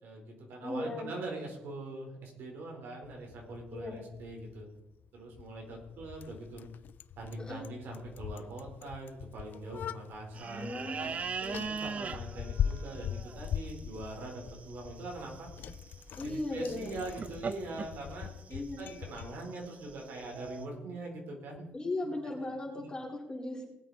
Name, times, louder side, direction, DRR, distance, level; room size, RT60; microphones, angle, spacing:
voice 1, 0.0-4.7 5.1-6.7 7.2-11.1 11.7-15.5 16.2-21.7 22.0-22.1 22.4-22.9, right 2 dB, 70° right, 0 dB, 4.2 m, -43 dB
voice 2, 0.6-1.1 3.7-4.0 7.4-7.7 10.5-11.7 16.2-17.0 18.5-18.8 21.7-23.7, left 2 dB, 20° left, -2 dB, 4.3 m, -37 dB
Bicycle, 3.0-19.3, left 9 dB, 55° left, 0.4 m, -41 dB
sound 1, 10.3-20.7, right 5 dB, 40° right, 0.8 m, -42 dB
19.5 x 8.4 x 4.2 m, 0.92 s
cardioid pair, 100°, 4 cm